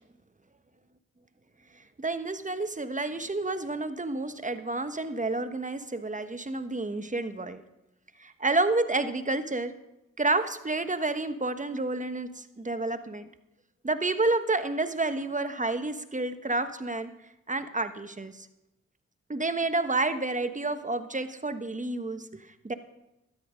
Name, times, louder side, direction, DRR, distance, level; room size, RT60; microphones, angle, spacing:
voice 1, 2.0-7.6 8.2-9.7 10.2-13.3 13.8-17.1 17.5-18.5 19.3-22.7, right 2 dB, 25° right, 10 dB, 1.2 m, -30 dB
13.0 x 10.5 x 5.1 m, 0.91 s
cardioid pair, 40°, 31 cm